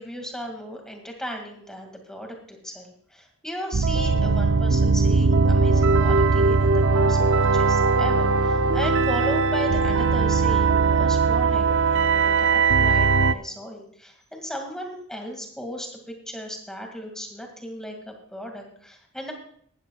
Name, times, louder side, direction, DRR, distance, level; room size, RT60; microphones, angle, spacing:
voice 1, 0.0-19.3, equal, 5° left, 2 dB, 2.1 m, -36 dB
sound 1, 3.7-13.3, right 4 dB, 60° right, 0.5 m, -20 dB
17.5 x 13.5 x 2.3 m, 0.64 s
head